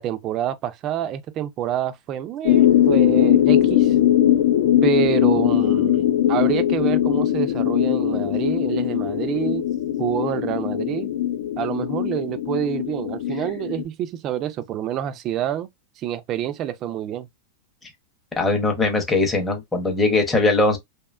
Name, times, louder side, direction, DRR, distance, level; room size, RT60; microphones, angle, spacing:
voice 1, 0.0-4.0 4.8-9.6 10.0-11.1 11.6-15.7 16.0-17.3, right 11 dB, 30° right, 0.3 m, -27 dB
sound 1, 2.5-13.8, left 11 dB, 75° left, 0.4 m, -20 dB
voice 2, 18.4-20.8, left 2 dB, 10° left, 0.6 m, -20 dB
2.8 x 2.2 x 2.3 m
supercardioid pair, 155°, 0 cm